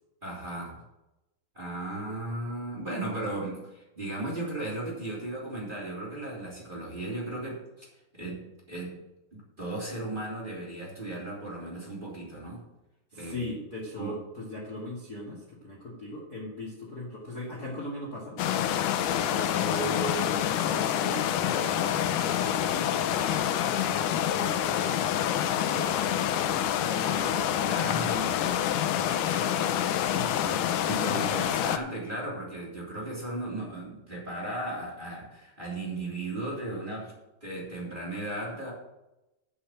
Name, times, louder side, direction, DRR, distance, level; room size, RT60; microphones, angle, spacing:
voice 1, 0.2-0.8 1.5-7.8 8.1-8.4 8.7-9.0 9.3-12.6 13.1-13.5 14.0-14.1 27.6-28.4 30.8-37.1 37.4-38.7, right 2 dB, 15° right, -6 dB, 3.1 m, -36 dB
voice 2, 13.1-18.4 19.1-24.0 24.3-29.4 30.1-31.6, left 1 dB, 30° left, -3 dB, 2.3 m, -39 dB
sound 1, 18.4-31.8, left 10 dB, 75° left, 2.1 m, -27 dB
8.4 x 7.1 x 7.5 m, 0.96 s
omnidirectional pair, 3.8 m